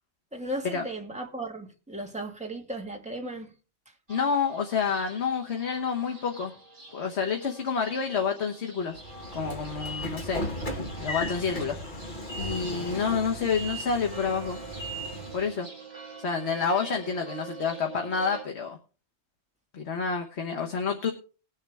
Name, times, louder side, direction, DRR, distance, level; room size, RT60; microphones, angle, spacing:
voice 1, 0.3-3.5, right 1 dB, 5° right, 1.7 m, -36 dB
voice 2, 4.1-6.5 6.9-9.0 9.3-10.4 11.0-11.8 12.4-14.6 15.3-15.7 16.2-18.8 19.7-21.1, left 6 dB, 75° left, 1.5 m, -28 dB
sound 1, 4.1-18.4, right 4 dB, 45° right, 2.7 m, -46 dB
Train / Sliding door, 9.0-15.5, equal, 45° left, 1.9 m, -36 dB
19.5 x 7.3 x 3.4 m
omnidirectional pair, 1.2 m